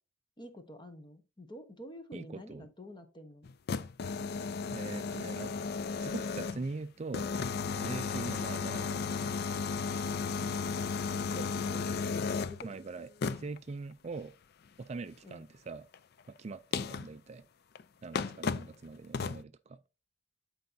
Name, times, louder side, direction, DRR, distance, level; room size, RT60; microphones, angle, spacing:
voice 1, 0.4-3.5 11.3-12.1 12.4-12.7 15.2-15.4, equal, 25° left, 1.0 m, -48 dB
voice 2, 2.1-2.7 4.7-5.5 6.0-7.3 7.7-9.3 12.6-14.3 14.8-15.9 16.3-17.4 18.0-19.8, right 3 dB, 35° right, 0.4 m, -42 dB
sound 1, 3.4-6.7 7.1-12.6 13.2-13.6 15.9-16.0 16.7-17.1 17.8-17.9 18.1-18.7 19.1-19.4, left 5 dB, 55° left, 0.4 m, -34 dB
12.0 x 4.7 x 2.7 m
head